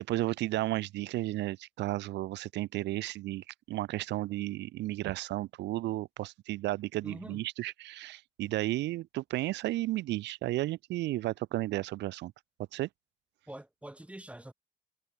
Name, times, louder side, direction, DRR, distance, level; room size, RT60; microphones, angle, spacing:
voice 1, 0.0-12.3 12.7-12.9, right 16 dB, 90° right, 3.5 m, -33 dB
voice 2, 7.0-7.4 13.5-14.5, right 1 dB, 5° right, 7.9 m, -45 dB
cardioid pair, 95°, 17 cm